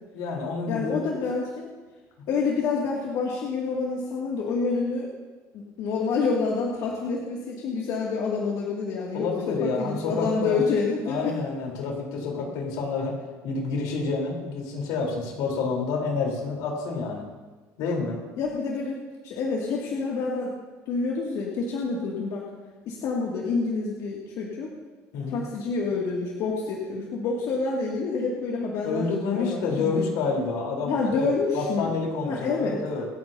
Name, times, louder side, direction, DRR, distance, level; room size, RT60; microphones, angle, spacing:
voice 1, 0.1-1.0 9.1-10.6 11.1-13.2 13.4-17.2 17.8-18.2 25.1-25.4 28.8-33.1, left 4 dB, 80° left, -1 dB, 3.9 m, -28 dB
voice 2, 0.7-1.7 2.3-5.1 5.5-9.3 9.6-11.3 18.4-19.0 19.2-20.5 20.9-22.5 22.9-24.7 25.3-29.1 29.3-30.0 30.8-32.0 32.3-32.8, left 4 dB, 65° left, -4 dB, 2.4 m, -28 dB
27.0 x 9.2 x 2.8 m, 1.3 s
cardioid pair, 115°, 7 cm